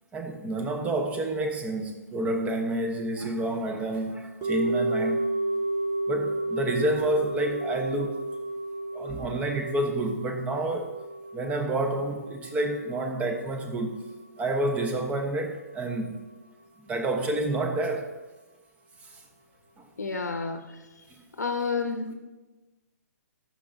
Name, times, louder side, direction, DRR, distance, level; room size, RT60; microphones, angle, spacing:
voice 1, 0.1-5.2 6.1-8.2 8.9-10.9 11.3-13.9 14.4-16.1 16.9-18.1, right 1 dB, 15° right, 4 dB, 1.0 m, -29 dB
sound 1, 4.4-14.7 14.9-15.0, right 2 dB, 30° right, 1.5 m, -32 dB
voice 2, 20.0-20.6 21.4-22.1, left 4 dB, 80° left, 6 dB, 0.8 m, -29 dB
14.0 x 6.6 x 2.7 m, 1.1 s
figure-of-eight pair, 130°, 9 cm